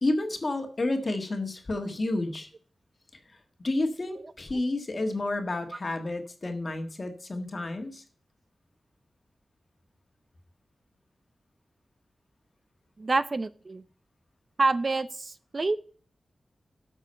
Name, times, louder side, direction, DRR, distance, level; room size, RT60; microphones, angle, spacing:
voice 1, 0.0-2.5 3.6-8.0, left 2 dB, 40° left, 6 dB, 1.6 m, -30 dB
voice 2, 13.0-13.8 14.6-15.8, right 3 dB, 40° right, 14 dB, 0.5 m, -27 dB
10.5 x 6.2 x 5.5 m, 0.42 s
wide cardioid pair, 80°, 0 cm